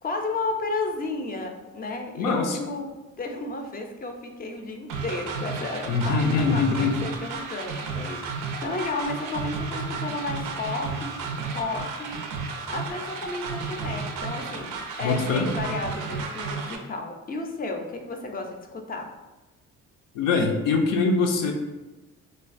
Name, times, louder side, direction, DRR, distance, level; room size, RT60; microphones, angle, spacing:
voice 1, 0.0-2.9 3.2-11.1 11.5-12.2 12.7-19.1, left 3 dB, 30° left, 4 dB, 0.4 m, -33 dB
voice 2, 2.2-2.7 5.9-7.0 15.0-15.5 20.1-21.5, left 4 dB, 80° left, 2 dB, 0.5 m, -23 dB
sound 1, 4.9-16.8, right 4 dB, 85° right, 0.5 m, -33 dB
3.2 x 2.2 x 2.5 m, 1.1 s
cardioid pair, 80°, 32 cm